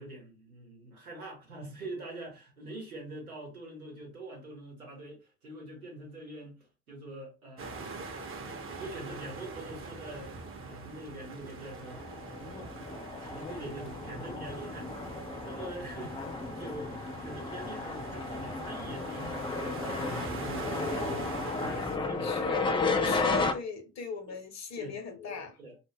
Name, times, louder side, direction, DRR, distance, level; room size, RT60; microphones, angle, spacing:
voice 1, 0.0-8.1 8.8-12.0 12.4-14.9 15.4-20.7 21.0-22.4 22.8-23.0 24.3-24.4 24.8-25.0 25.6-25.8, right 1 dB, 85° right, 0.8 m, -44 dB
sound 1, 7.6-22.0, right 3 dB, 30° right, 0.7 m, -43 dB
sound 2, 11.8-23.5, left 3 dB, 15° left, 0.3 m, -34 dB
voice 2, 22.2-22.7 23.0-25.6, left 5 dB, 40° left, 0.9 m, -38 dB
2.3 x 2.0 x 3.2 m
figure-of-eight pair, 40°, 42 cm